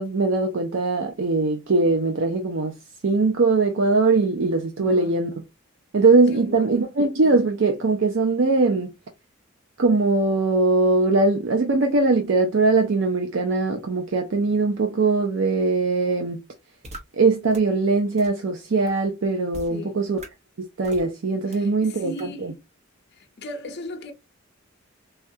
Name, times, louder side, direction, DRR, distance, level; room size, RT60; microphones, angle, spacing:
voice 1, 0.0-2.8 3.0-5.3 5.9-8.9 9.8-16.4 17.1-20.2 20.6-22.5, right 3 dB, 65° right, 0.5 m, -21 dB
voice 2, 4.8-5.2 6.3-6.8 19.7-20.1 21.5-22.6 23.1-24.1, left 1 dB, 55° left, 0.6 m, -37 dB
sound 1, 16.8-17.0 17.5-17.6 18.2-18.3 18.9-19.0 19.5-19.7 20.2-20.3 20.8-21.0 21.5-21.6 22.2-22.3, right 1 dB, 30° right, 0.8 m, -38 dB
3.4 x 2.3 x 2.6 m
head